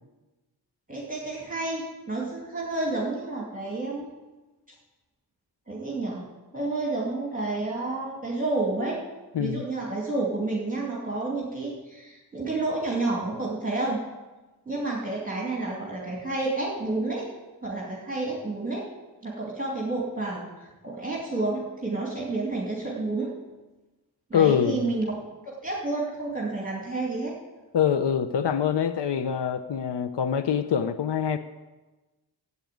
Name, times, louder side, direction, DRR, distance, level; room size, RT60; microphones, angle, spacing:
voice 1, 0.9-4.1 5.7-6.3 6.5-9.1 9.4-14.0 14.7-17.3 17.6-18.8 19.2-23.3 24.3-25.2 25.5-27.3, right 2 dB, 20° right, -3 dB, 2.6 m, -30 dB
voice 2, 9.3-9.7 24.3-24.9 27.7-31.4, left 8 dB, 85° left, 11 dB, 0.7 m, -24 dB
13.5 x 8.5 x 9.2 m, 1.2 s
wide cardioid pair, 120°, 40 cm